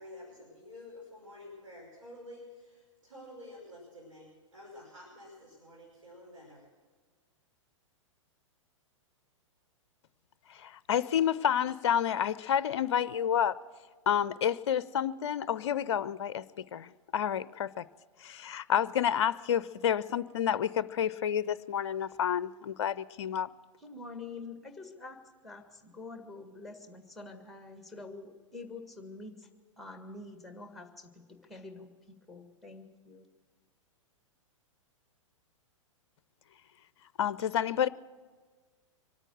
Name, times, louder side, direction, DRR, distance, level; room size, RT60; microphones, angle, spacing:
voice 1, 0.0-6.6, left 1 dB, 75° right, -5 dB, 5.8 m, -50 dB
voice 2, 10.5-13.6 14.1-17.9 18.2-23.5 37.2-37.9, left 9 dB, 55° left, 18 dB, 0.5 m, -29 dB
voice 3, 23.8-29.5 29.8-33.3, left 3 dB, ahead, 6 dB, 1.7 m, -46 dB
25.0 x 9.0 x 6.4 m, 1.5 s
figure-of-eight pair, 105°, 17 cm